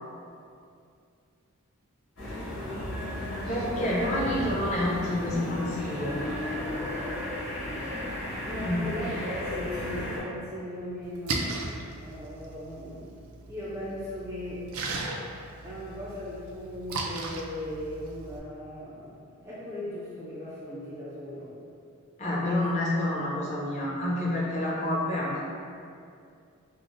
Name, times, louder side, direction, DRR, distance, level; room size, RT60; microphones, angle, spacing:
sound 1, 2.2-10.2, left 1 dB, 65° left, 1.2 m, -34 dB
voice 1, 3.5-6.2 8.6-8.8 22.2-25.4, left 1 dB, 30° left, -6 dB, 0.7 m, -28 dB
voice 2, 8.4-11.6 12.0-13.1 13.5-14.7 15.6-21.5 22.4-22.7, left 1 dB, 10° right, -8 dB, 0.3 m, -38 dB
Splash splatter, 11.0-18.4, right 3 dB, 85° right, 0.4 m, -37 dB
5.2 x 2.0 x 2.5 m, 2.4 s
head